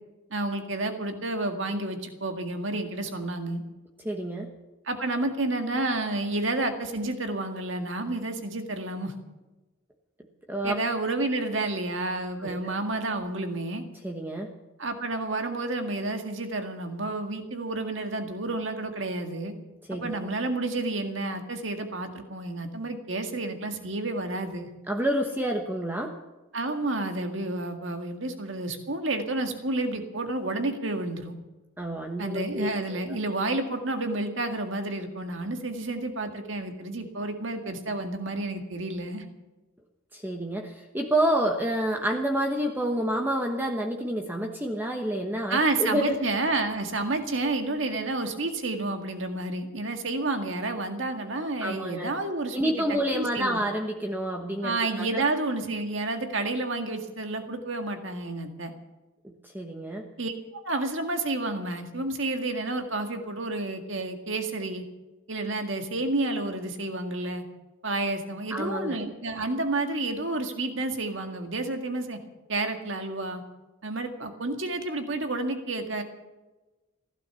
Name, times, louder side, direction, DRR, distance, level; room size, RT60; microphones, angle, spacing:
voice 1, 0.3-3.6 4.9-9.1 10.6-13.8 14.8-19.5 20.0-24.7 26.5-31.4 32.2-39.2 45.5-52.7 53.1-53.6 54.6-58.7 60.2-60.3 60.6-64.8 65.3-67.4 67.8-72.2 72.5-73.4 73.8-76.0, right 2 dB, 60° right, 5 dB, 1.9 m, -30 dB
voice 2, 4.0-4.5 10.5-10.8 12.4-12.7 14.0-14.5 19.9-20.2 24.9-26.2 31.8-33.0 40.1-46.1 51.6-52.1 52.5-55.2 59.2-60.1 68.5-69.0, right 1 dB, 10° right, 1 dB, 1.1 m, -29 dB
15.5 x 12.0 x 7.0 m, 1.1 s
head